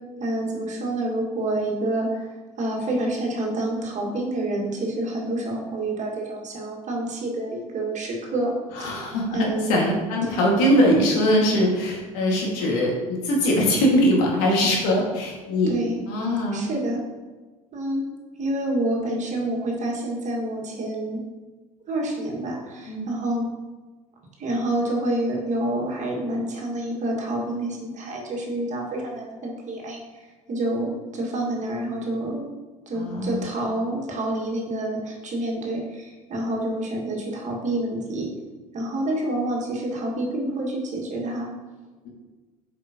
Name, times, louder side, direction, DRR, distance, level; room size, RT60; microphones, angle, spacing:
voice 1, 0.2-8.5 8.8-9.8 10.2-10.4 15.7-16.0 16.5-17.0 17.7-18.0 18.4-21.2 21.9-23.5 24.4-32.5 32.9-38.3 38.7-41.5, right 1 dB, 40° right, -1 dB, 1.8 m, -28 dB
voice 2, 8.8-15.7 16.1-16.6 22.9-23.1 33.0-33.4, equal, 65° left, -2 dB, 2.0 m, -21 dB
8.2 x 5.2 x 2.9 m, 1.3 s
figure-of-eight pair, 60°, 19 cm